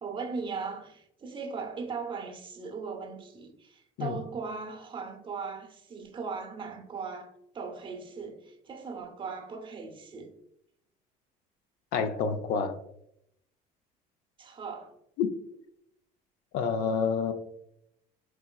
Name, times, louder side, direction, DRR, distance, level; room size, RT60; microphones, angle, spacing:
voice 1, 0.0-10.3 14.4-14.9, right 5 dB, 30° right, 0.7 m, -38 dB
voice 2, 11.9-12.8 15.2-15.3 16.5-17.3, left 6 dB, 70° left, 0.4 m, -28 dB
4.6 x 2.9 x 2.3 m
cardioid pair, 105°, 17 cm